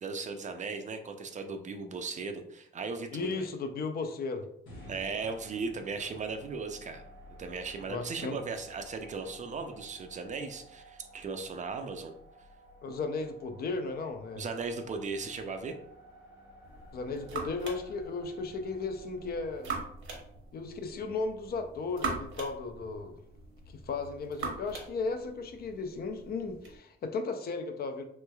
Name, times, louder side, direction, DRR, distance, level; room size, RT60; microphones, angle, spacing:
voice 1, 0.0-3.5 4.9-7.0 7.4-12.1 14.4-15.7, right 4 dB, 40° right, 6 dB, 0.4 m, -37 dB
voice 2, 3.1-4.5 7.9-8.4 12.8-14.4 16.9-19.8 20.5-23.2 23.8-28.0, left 4 dB, 50° left, 6 dB, 0.4 m, -35 dB
sound 1, 4.7-20.8, right 1 dB, 85° left, 1.1 m, -53 dB
sound 2, 16.6-26.8, right 4 dB, 75° right, 0.9 m, -42 dB
3.1 x 3.1 x 2.2 m, 0.72 s
cardioid pair, 90°, 20 cm